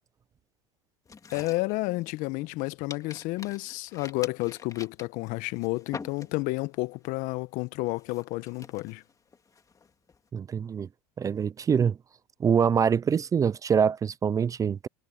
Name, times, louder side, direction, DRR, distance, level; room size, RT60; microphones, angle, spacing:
sound 1, 1.1-2.5 2.9-6.7 7.0-7.4 7.9-10.2, left 5 dB, 20° left, 2.5 m, -45 dB
voice 1, 1.3-9.0, left 22 dB, 55° left, 1.0 m, -31 dB
voice 2, 10.3-10.9 11.2-12.0 12.4-14.9, right 7 dB, 20° right, 0.4 m, -24 dB
hypercardioid pair, 100°, 16 cm